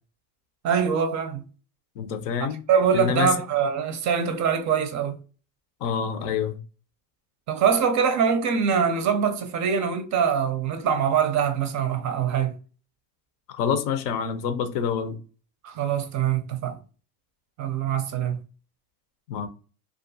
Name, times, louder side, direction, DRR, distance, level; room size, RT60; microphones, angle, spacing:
voice 1, 0.6-1.4 2.4-5.2 7.5-12.5 15.6-16.8 17.6-18.4, right 7 dB, 40° right, 0.4 m, -23 dB
voice 2, 2.0-2.6 2.9-3.3 5.8-6.6 13.5-15.2 19.3-19.5, left 7 dB, 75° left, 0.7 m, -27 dB
2.4 x 2.3 x 2.6 m
supercardioid pair, 90°, 49 cm